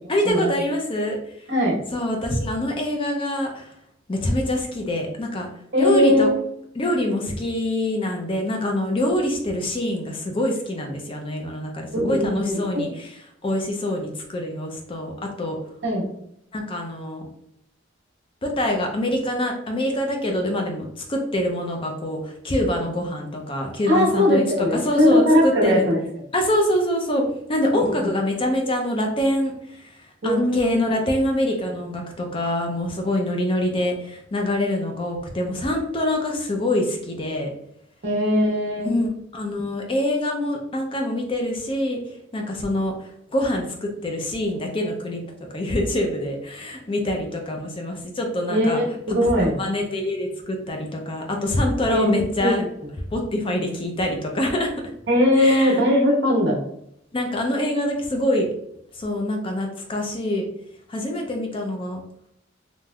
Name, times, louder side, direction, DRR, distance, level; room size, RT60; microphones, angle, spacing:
voice 1, 0.1-1.5 1.9-3.7 4.1-5.5 5.8-6.3 6.8-13.1 13.4-15.6 16.5-17.3 18.4-25.9 26.3-37.5 38.8-39.1 39.3-45.2 45.5-48.8 49.4-52.6 53.1-54.7 55.4-55.8 57.1-58.5 58.9-60.4 60.9-62.0, left 1 dB, 25° left, 2 dB, 0.4 m, -25 dB
voice 2, 5.7-6.3 11.9-12.6 15.8-16.1 23.9-26.0 27.7-28.1 30.2-30.9 38.0-38.9 48.5-49.6 51.9-52.5 55.1-56.6, left 1 dB, 60° right, -3 dB, 1.0 m, -20 dB
3.4 x 2.6 x 2.2 m, 0.74 s
head